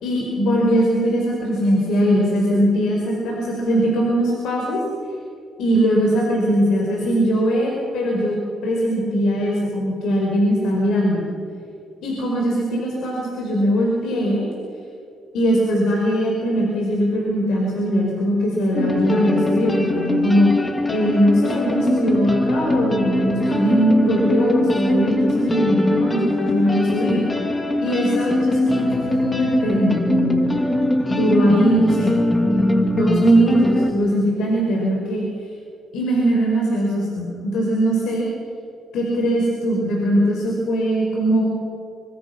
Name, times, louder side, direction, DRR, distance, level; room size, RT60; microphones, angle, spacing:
voice 1, 0.0-4.8 5.6-11.2 12.0-14.5 15.3-20.5 20.9-27.2 27.8-30.5 31.1-32.1 32.4-35.3 35.9-38.3 38.9-41.4, equal, 80° left, -2 dB, 5.2 m, -20 dB
sound 1, 18.7-33.9, left 1 dB, 20° left, 2.5 m, -22 dB
24.5 x 24.5 x 6.1 m, 2.4 s
cardioid pair, 90°, 0 cm